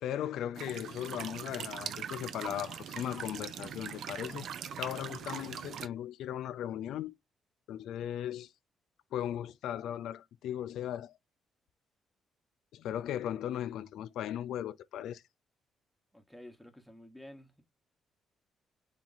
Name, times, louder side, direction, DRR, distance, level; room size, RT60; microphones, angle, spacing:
voice 1, 0.0-4.5 4.8-7.1 7.7-8.5 9.1-11.2 12.7-15.2, left 11 dB, 80° left, 0.3 m, -37 dB
sound 1, 0.5-5.9, right 8 dB, 70° right, 0.4 m, -41 dB
voice 2, 16.1-17.6, left 1 dB, ahead, 1.0 m, -51 dB
3.7 x 2.8 x 3.9 m
cardioid pair, 90°, 0 cm